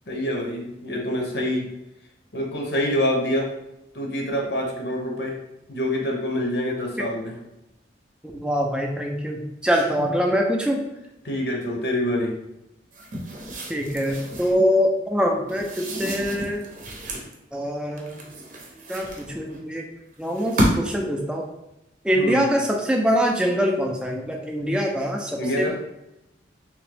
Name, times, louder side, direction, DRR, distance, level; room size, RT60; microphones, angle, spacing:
voice 1, 0.1-1.7 2.3-3.5 3.9-5.4 5.7-7.4 9.7-10.1 11.2-12.4 22.2-22.5 25.4-25.8, left 1 dB, 65° left, 0 dB, 0.7 m, -26 dB
voice 2, 8.3-10.8 13.7-16.6 17.5-18.2 18.9-19.8 20.2-21.4 22.0-25.8, equal, 5° right, 1 dB, 0.4 m, -24 dB
sound 1, 12.9-14.6 15.5-17.3 18.0-19.6 20.2-21.1, equal, 45° right, 0.7 m, -30 dB
3.5 x 2.9 x 3.3 m, 0.91 s
head